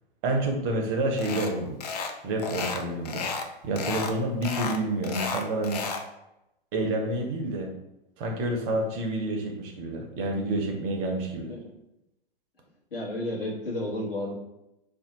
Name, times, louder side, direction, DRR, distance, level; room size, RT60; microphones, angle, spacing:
voice 1, 0.2-1.8 2.2-3.2 3.6-5.9 6.7-7.7 8.2-11.5, right 2 dB, 25° right, 2 dB, 0.5 m, -28 dB
sound 1, 1.2-1.5 1.8-2.1 2.4-3.5 3.8-4.1 4.4-6.1, left 4 dB, 45° left, 0.4 m, -32 dB
voice 2, 12.9-14.4, left 1 dB, 65° left, -3 dB, 1.1 m, -32 dB
2.6 x 2.1 x 3.9 m, 0.89 s
figure-of-eight pair, 110°, 30 cm